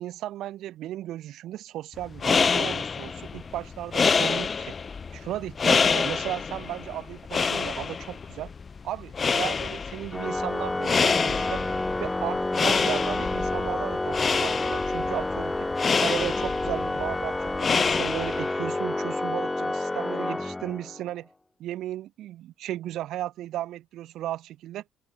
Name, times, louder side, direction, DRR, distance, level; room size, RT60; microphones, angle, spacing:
voice 1, 0.0-4.7 5.1-8.5 8.8-11.6 12.0-15.7 15.9-21.3 21.6-24.8, right 13 dB, 70° right, 3.7 m, -35 dB
sound 1, 2.0-18.6, left 5 dB, 30° left, 3.5 m, -27 dB
Organ, 10.1-21.1, left 2 dB, 10° left, 3.0 m, -29 dB
open air
cardioid pair, 135°, 0 cm